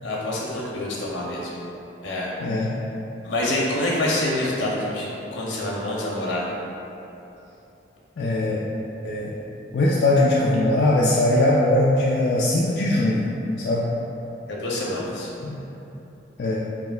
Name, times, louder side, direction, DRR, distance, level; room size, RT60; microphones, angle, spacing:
voice 1, 0.0-1.5 2.0-2.3 3.2-6.5 14.5-15.3, left 1 dB, 85° left, -5 dB, 0.8 m, -26 dB
voice 2, 2.4-2.7 8.2-8.6 9.0-9.3 9.7-13.2 13.6-13.9 15.4-15.6 16.4-16.6, left 1 dB, 60° left, -5 dB, 0.3 m, -20 dB
5.0 x 2.8 x 2.4 m, 2.9 s
head